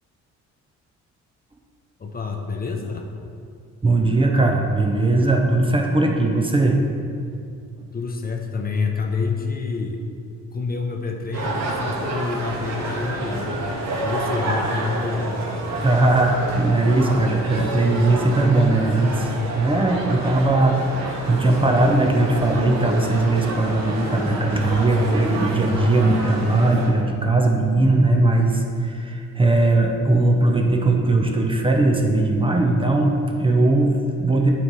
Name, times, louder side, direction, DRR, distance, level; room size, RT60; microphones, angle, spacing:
voice 1, 2.0-3.0 7.9-10.0 10.5-13.5 14.0-15.5 20.4-20.6, left 4 dB, 30° left, 2 dB, 0.6 m, -27 dB
voice 2, 3.8-6.8 15.8-19.3 19.6-34.6, right 2 dB, 20° right, 1 dB, 0.6 m, -19 dB
sound 1, 11.3-26.9, right 2 dB, 65° right, 1.1 m, -29 dB
8.7 x 3.2 x 4.1 m, 2.4 s
cardioid pair, 90°, 30 cm